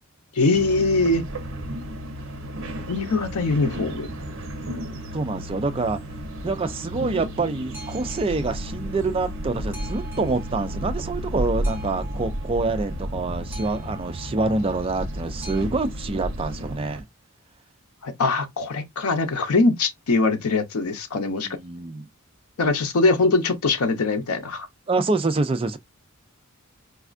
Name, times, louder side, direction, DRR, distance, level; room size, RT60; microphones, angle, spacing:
voice 1, 0.3-1.2 2.9-4.1 18.0-21.5 22.6-24.7, left 3 dB, 90° left, 0.7 m, -22 dB
sound 1, 0.5-17.0, equal, 60° right, 0.7 m, -33 dB
Boat Water vehicle, 3.1-15.6, equal, 10° right, 0.8 m, -40 dB
voice 2, 5.1-6.0 6.4-17.0 21.3-22.1 24.9-25.8, right 3 dB, 25° right, 0.4 m, -26 dB
4.2 x 2.3 x 2.4 m
head